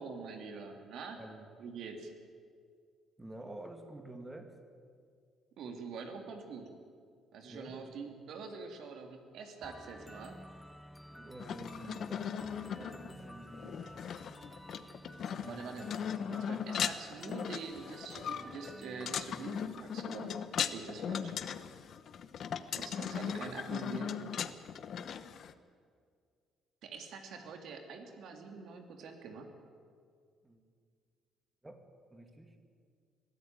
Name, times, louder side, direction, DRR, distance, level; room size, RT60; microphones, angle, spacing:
voice 1, 0.0-1.2 1.6-2.1 5.6-6.7 7.3-10.4 15.4-15.9 16.3-20.3 20.6-21.3 22.7-24.3 26.8-29.5, right 5 dB, 70° right, 4 dB, 2.9 m, -45 dB
voice 2, 1.2-1.5 3.2-4.5 7.5-7.8 11.1-13.8 15.2-16.0 30.4-30.6 31.6-31.8 32.1-32.6, right 1 dB, 15° right, 6 dB, 2.4 m, -49 dB
sound 1, 9.6-19.6, equal, ahead, 0.6 m, -52 dB
sound 2, 11.4-25.5, left 8 dB, 60° left, 0.9 m, -38 dB
22.0 x 13.5 x 9.1 m, 2.1 s
cardioid pair, 95°, 0 cm